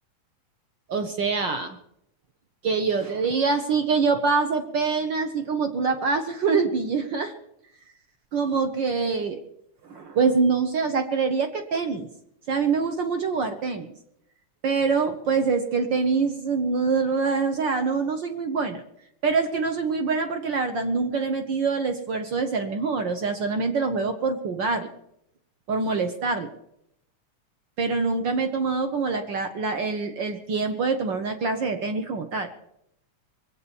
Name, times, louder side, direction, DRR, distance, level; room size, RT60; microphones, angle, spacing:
voice 1, 0.9-1.8 2.6-7.3 8.3-9.4 9.9-12.1 12.5-13.9 14.6-18.8 19.2-24.9 25.7-26.5 27.8-32.5, right 4 dB, 65° right, 7 dB, 1.1 m, -25 dB
22.0 x 8.5 x 7.0 m, 0.77 s
omnidirectional pair, 3.4 m